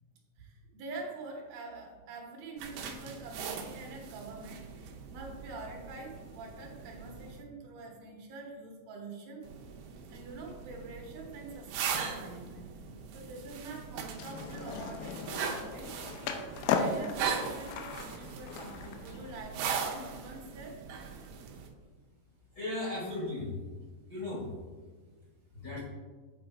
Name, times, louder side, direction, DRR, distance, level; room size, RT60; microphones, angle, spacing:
voice 1, 0.4-9.4 10.1-12.7 13.1-15.9 16.7-20.8, right 3 dB, 75° right, 1 dB, 2.7 m, -46 dB
sound 1, 2.6-7.4 9.4-21.7, right 6 dB, 90° right, 2.8 m, -40 dB
Skateboard, 14.2-19.4, left 5 dB, 85° left, 2.4 m, -36 dB
voice 2, 22.5-23.5 24.1-24.5 25.5-25.8, left 2 dB, 55° left, -7 dB, 1.2 m, -36 dB
8.8 x 3.9 x 4.5 m, 1.5 s
omnidirectional pair, 4.3 m